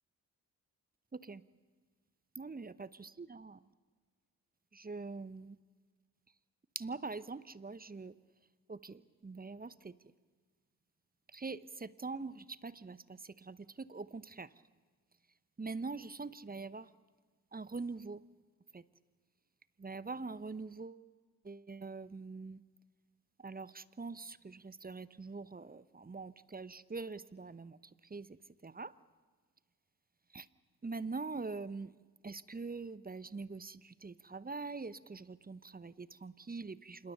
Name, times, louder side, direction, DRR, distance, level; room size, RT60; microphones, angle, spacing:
voice 1, 1.1-1.4 2.4-3.6 4.7-5.6 6.7-8.1 8.7-10.0 11.3-14.5 15.6-16.9 17.5-18.2 18.7-18.8 19.8-21.0 21.4-22.6 23.4-28.4 28.6-28.9 30.3-30.5 30.8-31.9 32.2-37.1, right 4 dB, 20° right, 17 dB, 0.9 m, -44 dB
26.5 x 21.0 x 6.8 m, 1.5 s
hypercardioid pair, 40°, 42 cm